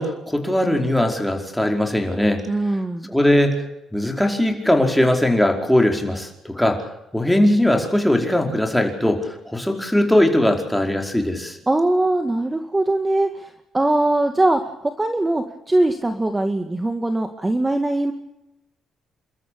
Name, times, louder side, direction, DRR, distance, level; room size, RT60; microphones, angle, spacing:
voice 1, 0.0-2.4 3.1-3.6 3.9-6.8 7.1-11.6, left 1 dB, 5° left, 3 dB, 4.9 m, -20 dB
voice 2, 2.5-3.1 11.7-18.1, right 2 dB, 15° right, 7 dB, 1.9 m, -21 dB
29.5 x 13.5 x 8.6 m, 0.89 s
cardioid pair, 90°, 0 cm